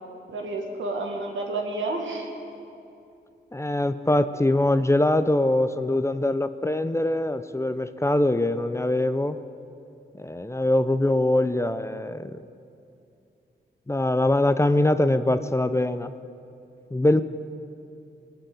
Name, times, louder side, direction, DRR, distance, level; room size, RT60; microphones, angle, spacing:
voice 1, 0.3-2.3, right 2 dB, 85° right, 1 dB, 1.9 m, -30 dB
voice 2, 3.5-9.4 10.2-12.4 13.9-16.1 16.9-17.2, left 1 dB, 15° left, 11 dB, 0.6 m, -23 dB
19.5 x 8.2 x 7.9 m, 2.7 s
cardioid pair, 65°, 19 cm